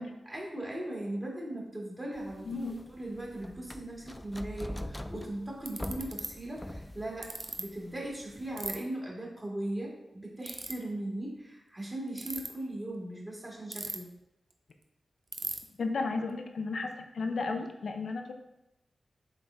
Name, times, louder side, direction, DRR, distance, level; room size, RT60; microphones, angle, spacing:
voice 1, 0.0-7.3 7.6-14.1, right 1 dB, 20° right, -4 dB, 2.2 m, -38 dB
sound 1, 2.2-8.8, left 1 dB, 15° left, 0.3 m, -43 dB
voice 2, 2.5-2.8 15.8-18.3, left 3 dB, 75° left, 5 dB, 0.7 m, -33 dB
Ratchet pawl, 5.7-6.3 7.2-7.6 8.6-8.8 10.4-10.7 12.1-12.5 13.7-14.2 14.5-14.6 14.8-14.9 15.3-15.6, right 3 dB, 55° right, 0.6 m, -36 dB
7.1 x 3.9 x 3.5 m, 0.90 s
cardioid pair, 60°, 0 cm